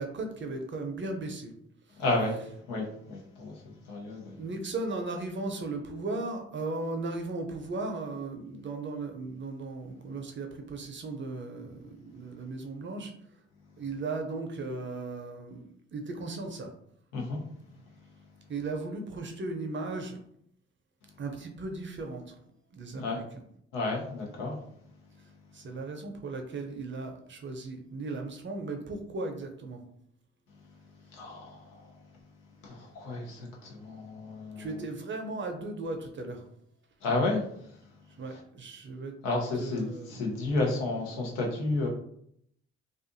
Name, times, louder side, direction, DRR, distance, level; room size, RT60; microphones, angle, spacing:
voice 1, 0.0-1.5 4.4-13.1 13.8-16.7 18.5-20.2 21.2-22.4 22.7-23.4 25.5-29.8 34.6-36.4 38.2-39.1 39.6-40.4, right 3 dB, 35° right, 4 dB, 0.6 m, -36 dB
voice 2, 2.0-2.4 2.7-3.5 3.9-4.4 17.1-17.4 22.9-23.2 23.7-24.5 31.1-31.6 32.6-34.7 37.0-37.4 39.2-41.9, left 2 dB, 80° left, -1 dB, 0.7 m, -31 dB
2.5 x 2.4 x 2.6 m, 0.69 s
hypercardioid pair, 45°, 32 cm